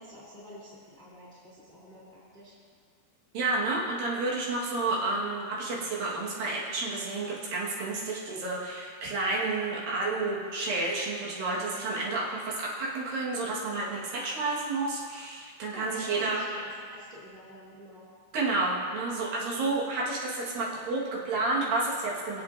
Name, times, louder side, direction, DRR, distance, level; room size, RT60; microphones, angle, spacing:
voice 1, 0.0-2.0 2.3-2.5 15.7-18.0, equal, 5° left, -7 dB, 2.1 m, -47 dB
voice 2, 3.3-16.4 18.3-22.4, right 3 dB, 70° right, -5 dB, 3.1 m, -30 dB
23.0 x 8.1 x 2.5 m, 2.1 s
omnidirectional pair, 4.3 m